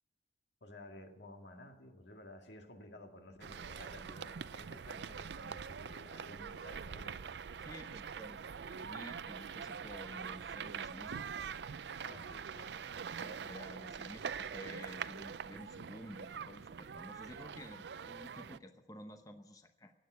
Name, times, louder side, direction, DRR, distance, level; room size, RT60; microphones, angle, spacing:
voice 1, 0.6-7.2 12.0-13.1, left 1 dB, 80° left, 4 dB, 2.0 m, -53 dB
sound 1, 3.4-18.6, right 6 dB, 75° right, 0.5 m, -44 dB
voice 2, 7.6-11.3 13.2-19.9, left 1 dB, 20° left, 7 dB, 0.8 m, -51 dB
16.5 x 8.8 x 9.3 m, 0.99 s
head